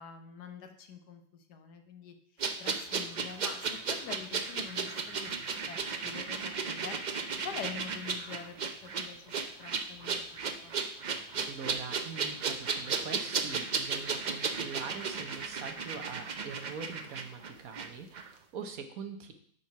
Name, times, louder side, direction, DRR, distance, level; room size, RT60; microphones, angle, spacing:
voice 1, 0.0-2.1 2.6-8.5 8.8-10.7, left 7 dB, 80° left, 7 dB, 1.5 m, -46 dB
sound 1, 2.4-17.9 18.1-18.3, right 5 dB, 85° right, 0.4 m, -35 dB
voice 2, 11.5-19.3, right 5 dB, 60° right, 6 dB, 1.3 m, -43 dB
8.3 x 4.6 x 5.8 m, 0.63 s
omnidirectional pair, 1.8 m